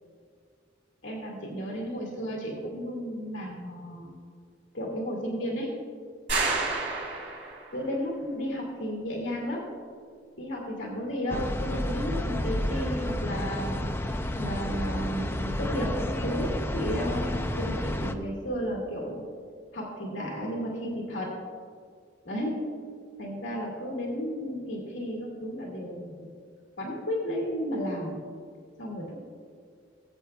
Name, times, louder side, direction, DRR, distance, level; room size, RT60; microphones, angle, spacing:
voice 1, 1.0-4.1 4.7-5.7 7.7-9.7 10.4-19.3 19.7-21.3 22.2-22.6 23.2-26.1 26.8-28.2 28.8-29.1, equal, 85° left, -3 dB, 2.3 m, -33 dB
sound 1, 6.3-7.8, right 3 dB, 70° right, 2.9 m, -29 dB
sound 2, 11.3-18.1, left 1 dB, 10° left, 0.5 m, -30 dB
20.5 x 8.2 x 2.3 m, 2.2 s
head